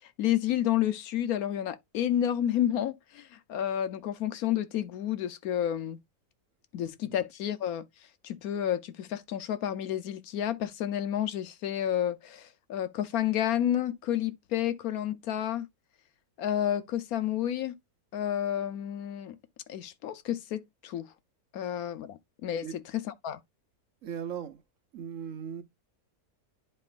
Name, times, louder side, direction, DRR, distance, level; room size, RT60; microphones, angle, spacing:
voice 1, 0.2-6.0 6.7-7.8 8.2-15.7 16.4-17.7 18.1-19.4 19.7-21.1 21.5-23.4, left 11 dB, 75° left, 1.2 m, -30 dB
voice 2, 24.0-24.6 24.9-25.6, right 8 dB, 60° right, 1.2 m, -38 dB
10.5 x 4.4 x 2.5 m
omnidirectional pair, 1.6 m